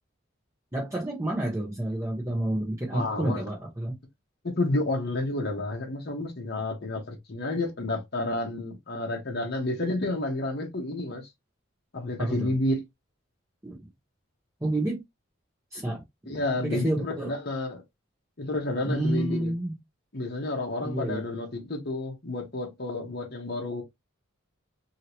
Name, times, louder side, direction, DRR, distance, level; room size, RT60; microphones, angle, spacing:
voice 1, 0.7-4.0 12.2-12.5 13.6-13.8 14.6-15.0 15.7-16.0 16.5-17.3 18.8-19.8 20.8-21.2, right 1 dB, 15° right, 0.8 m, -29 dB
voice 2, 2.9-3.4 4.4-11.3 11.9-12.8 16.3-17.8 18.4-19.5 20.1-23.8, left 2 dB, 50° left, 1.0 m, -30 dB
2.9 x 2.7 x 2.9 m
head